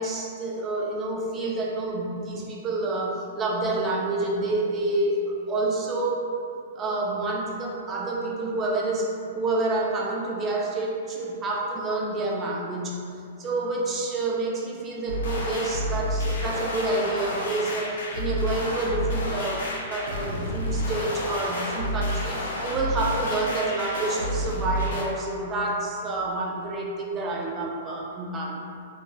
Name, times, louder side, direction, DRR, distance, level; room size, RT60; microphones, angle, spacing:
voice 1, 0.0-6.3 6.8-28.6, right 2 dB, 20° right, -2 dB, 0.3 m, -28 dB
sound 1, 15.1-25.0, equal, 80° left, 0.6 m, -29 dB
3.0 x 2.6 x 2.2 m, 2.5 s
hypercardioid pair, 160°, 0 cm